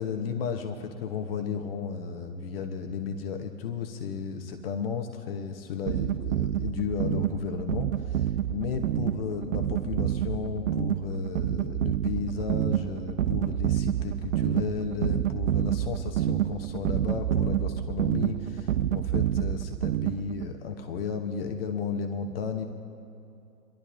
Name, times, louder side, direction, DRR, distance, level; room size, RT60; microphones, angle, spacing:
voice 1, 0.0-22.6, left 6 dB, 40° left, 5 dB, 1.1 m, -34 dB
sound 1, 5.9-20.5, right 11 dB, 60° right, 0.5 m, -28 dB
27.5 x 12.0 x 2.6 m, 2.6 s
figure-of-eight pair, 115°, 46 cm